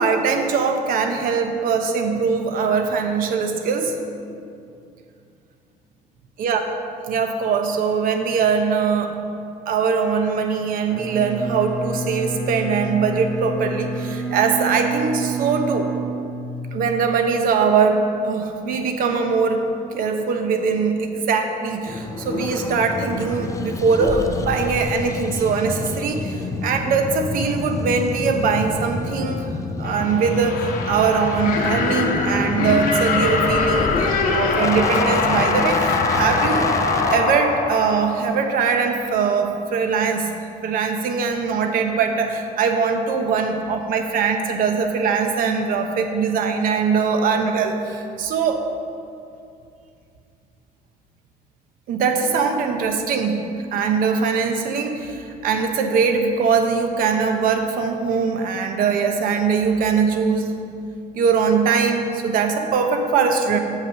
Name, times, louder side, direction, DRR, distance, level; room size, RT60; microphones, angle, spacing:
voice 1, 0.0-4.0 6.4-6.6 7.1-9.2 9.7-15.9 16.7-26.4 26.6-29.5 29.8-33.9 34.3-36.7 37.1-40.3 40.6-48.6 51.9-60.5 61.1-63.6, right 5 dB, 65° right, 5 dB, 0.8 m, -21 dB
Bowed string instrument, 10.9-16.9, right 3 dB, ahead, 1.3 m, -28 dB
sound 1, 21.9-37.2, left 3 dB, 20° left, 0.4 m, -29 dB
sound 2, 29.8-38.7, left 4 dB, 65° left, 1.0 m, -23 dB
7.7 x 5.7 x 5.8 m, 2.5 s
cardioid pair, 155°, 16 cm